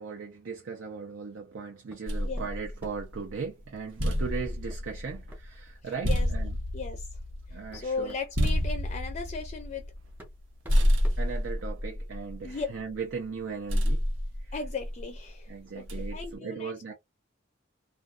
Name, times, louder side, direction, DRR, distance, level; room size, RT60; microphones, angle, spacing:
voice 1, 0.0-6.6 7.5-8.1 11.2-14.0 14.4-14.6 15.5-16.9, right 5 dB, 70° right, 0.5 m, -38 dB
sound 1, 1.9-2.1 2.4-3.2 4.7-4.9 5.3-5.4 5.9-6.1 6.9-7.0 7.5-8.6 9.7-9.8 10.2-11.9, equal, 10° right, 0.8 m, -50 dB
sound 2, 2.1-3.3 3.7-10.4 10.7-12.9 13.7-15.2 15.9-16.3, equal, 90° right, 0.9 m, -29 dB
voice 2, 6.0-6.4 6.7-7.1 7.5-9.9 12.4-12.7 14.5-15.8 16.1-16.9, left 4 dB, 35° left, 0.4 m, -36 dB
2.5 x 2.3 x 2.3 m
head